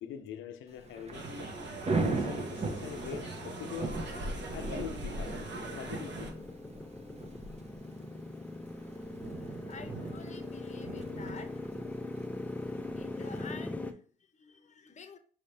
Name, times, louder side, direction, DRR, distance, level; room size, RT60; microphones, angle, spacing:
voice 1, 0.0-1.3 2.0-4.0 4.5-5.4 5.7-6.3, left 9 dB, 75° left, 0.6 m, -43 dB
Thunder / Rain, 0.7-13.4, right 3 dB, 35° right, 0.7 m, -39 dB
sound 1, 1.1-6.3, right 2 dB, 65° right, 1.1 m, -42 dB
Motorcycle, 1.3-13.9, left 2 dB, 10° left, 0.4 m, -42 dB
voice 2, 9.7-11.7 12.9-15.2, left 5 dB, 35° left, 0.7 m, -50 dB
5.5 x 2.7 x 3.2 m
cardioid pair, 90°, 20 cm